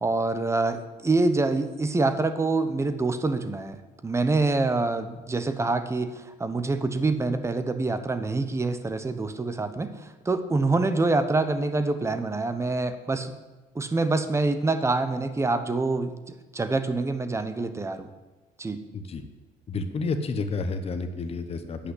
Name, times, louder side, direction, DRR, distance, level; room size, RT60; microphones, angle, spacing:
voice 1, 0.0-3.8 4.0-13.3 13.7-18.1 18.6-18.8, right 3 dB, 15° right, 10 dB, 0.8 m, -26 dB
voice 2, 19.7-21.9, left 3 dB, 35° left, 7 dB, 0.9 m, -30 dB
8.6 x 5.7 x 7.8 m, 1.2 s
cardioid pair, 110°, 17 cm